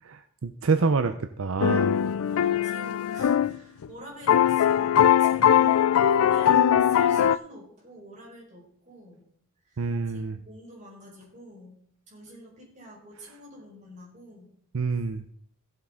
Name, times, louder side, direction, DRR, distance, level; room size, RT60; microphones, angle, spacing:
voice 1, 0.0-1.9 9.8-10.4 14.7-15.2, right 4 dB, 70° right, 9 dB, 0.6 m, -27 dB
sound 1, 1.6-3.6 3.8-3.9 4.3-7.4, left 9 dB, 80° left, 0.4 m, -21 dB
voice 2, 2.3-9.3 9.6-11.8 12.1-14.5, right 1 dB, 35° right, -4 dB, 4.7 m, -47 dB
16.0 x 7.6 x 3.8 m, 0.63 s
head